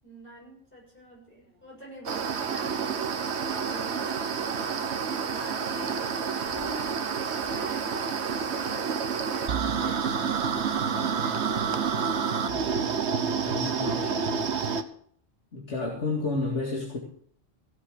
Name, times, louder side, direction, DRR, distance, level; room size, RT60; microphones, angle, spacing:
voice 1, 0.0-2.9 3.5-4.2 5.3-12.1 13.5-14.2, equal, 45° left, -3 dB, 7.2 m, -46 dB
sound 1, 1.4-11.7 12.3-12.4, equal, 40° right, 2.5 m, -51 dB
sound 2, 2.1-14.8, right 6 dB, 65° right, 1.3 m, -29 dB
voice 2, 13.4-14.0 15.5-17.0, left 3 dB, 70° left, -1 dB, 2.5 m, -30 dB
16.5 x 7.7 x 6.5 m, 0.62 s
omnidirectional pair, 1.2 m